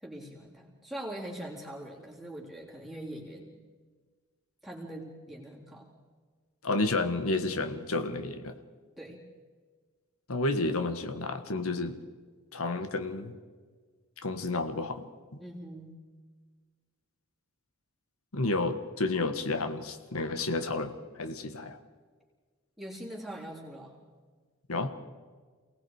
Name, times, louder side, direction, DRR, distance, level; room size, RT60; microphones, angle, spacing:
voice 1, 0.0-3.6 4.6-5.9 9.0-9.2 15.4-16.0 22.8-24.0, right 1 dB, ahead, -4 dB, 3.6 m, -42 dB
voice 2, 6.6-8.5 10.3-12.0 12.5-13.4 14.2-15.1 18.3-21.8 24.7-24.9, left 2 dB, 80° left, 7 dB, 1.4 m, -31 dB
28.5 x 19.0 x 4.9 m, 1.5 s
head